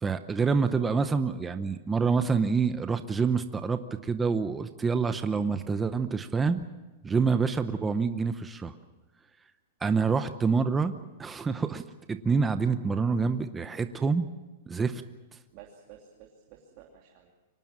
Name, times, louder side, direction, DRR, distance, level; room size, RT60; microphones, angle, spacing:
voice 1, 0.0-6.7 7.0-8.7 9.8-10.9 11.2-14.3 14.7-15.0, right 5 dB, 10° right, 9 dB, 0.8 m, -27 dB
voice 2, 15.5-17.3, right 9 dB, 35° right, 1 dB, 2.9 m, -52 dB
24.5 x 18.5 x 7.5 m, 1.1 s
supercardioid pair, 165°, 0 cm